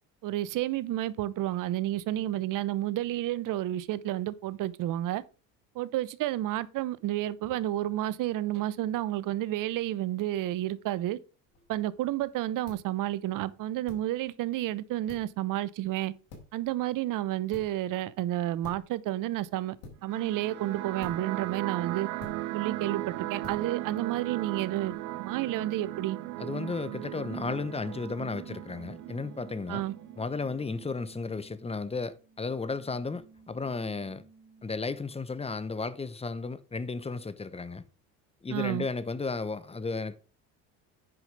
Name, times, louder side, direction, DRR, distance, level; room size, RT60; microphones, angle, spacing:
voice 1, 0.2-5.2 5.7-11.2 11.7-16.1 16.5-19.8 20.0-22.1 22.5-26.2 29.7-29.9 38.5-38.9, right 14 dB, 55° right, 0.8 m, -31 dB
sound 1, 11.5-24.9, left 3 dB, 75° left, 4.9 m, -53 dB
sound 2, 20.0-31.0, right 19 dB, 80° right, 0.6 m, -38 dB
sound 3, 20.1-35.6, right 4 dB, 25° right, 2.8 m, -53 dB
voice 2, 26.4-29.8 30.2-34.2 34.6-37.8 38.4-40.2, left 4 dB, 15° left, 1.0 m, -34 dB
9.8 x 5.1 x 5.1 m
supercardioid pair, 90°, 39 cm